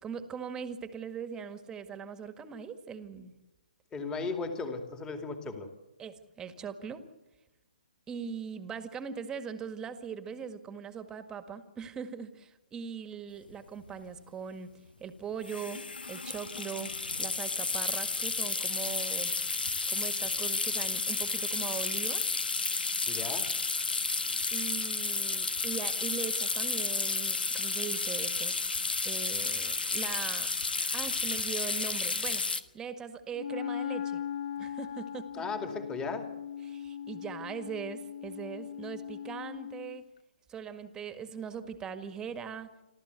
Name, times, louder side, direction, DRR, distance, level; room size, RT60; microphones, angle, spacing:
voice 1, 0.0-3.3 6.0-7.0 8.1-14.7 15.0-16.9 17.2-19.3 19.9-22.2 24.5-28.6 29.0-30.5 30.9-32.5 32.7-34.2 34.6-35.4 36.7-40.0 40.5-42.7, right 7 dB, 15° right, 9 dB, 1.8 m, -40 dB
voice 2, 3.9-5.7 23.1-23.5 35.3-36.3, left 4 dB, 15° left, 6 dB, 2.4 m, -36 dB
sound 1, 13.5-13.6 13.8-14.1 15.4-32.6, left 4 dB, 80° left, 1.4 m, -32 dB
Wind instrument woodwind instrument, 33.3-40.0, left 9 dB, 50° left, 1.1 m, -39 dB
28.0 x 13.5 x 8.2 m, 1.0 s
figure-of-eight pair, 135°, 5 cm